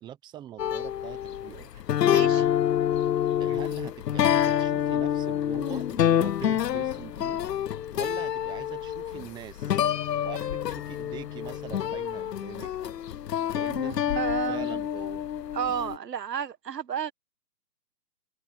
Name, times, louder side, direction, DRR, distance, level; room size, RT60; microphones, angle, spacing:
voice 1, 0.0-1.8 2.2-2.5 3.4-7.4 7.9-9.9 10.2-13.0 13.5-15.2, right 11 dB, 10° right, 1.0 m, -43 dB
sound 1, 0.6-16.0, left 10 dB, 80° left, 0.8 m, -27 dB
voice 2, 2.1-2.5 13.8-14.8 15.5-17.1, right 8 dB, 80° right, 1.7 m, -32 dB
hypercardioid pair, 150°, 48 cm